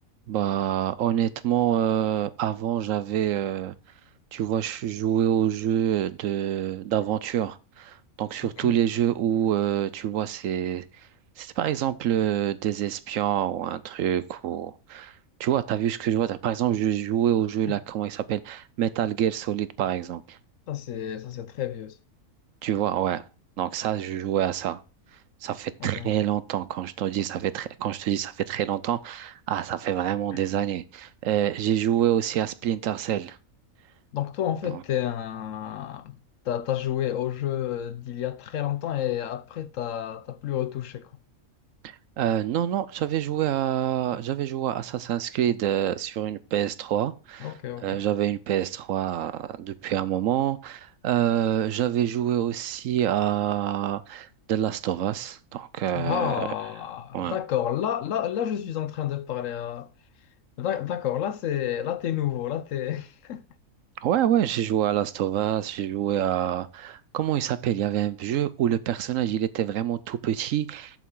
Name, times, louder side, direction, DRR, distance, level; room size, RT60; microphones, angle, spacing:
voice 1, 0.3-3.7 4.3-10.8 11.4-15.1 15.4-20.4 22.6-23.2 23.6-24.8 25.4-33.4 34.6-34.8 41.8-47.5 47.8-56.5 57.1-57.4 64.0-71.0, right 11 dB, 70° right, 0.9 m, -26 dB
voice 2, 8.4-8.7 17.7-17.8 20.7-22.0 25.8-26.1 30.3-30.4 34.1-36.2 36.5-41.1 47.4-48.0 56.0-59.9 60.6-63.4, left 11 dB, 65° left, 1.0 m, -30 dB
8.3 x 7.2 x 3.7 m
omnidirectional pair, 1.5 m